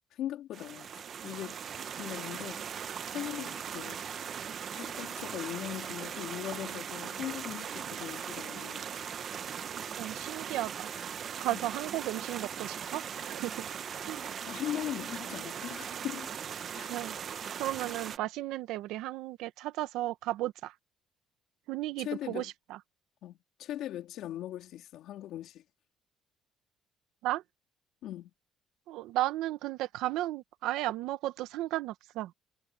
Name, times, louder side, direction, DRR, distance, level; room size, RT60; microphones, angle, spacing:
voice 1, 0.1-0.9 1.2-1.6 2.0-4.1 4.7-8.8 11.5-11.7 14.4-16.3 16.7-16.9 22.0-22.5 23.2-25.6 28.0-28.3, left 12 dB, 65° left, 3.7 m, -40 dB
sound 1, 0.5-18.2, right 8 dB, 40° right, 0.9 m, -39 dB
voice 2, 10.0-13.7 14.1-14.2 16.9-17.2 17.6-20.7 21.7-22.8 27.2-27.4 28.9-32.3, right 15 dB, 80° right, 1.0 m, -34 dB
cardioid pair, 155°, 0 cm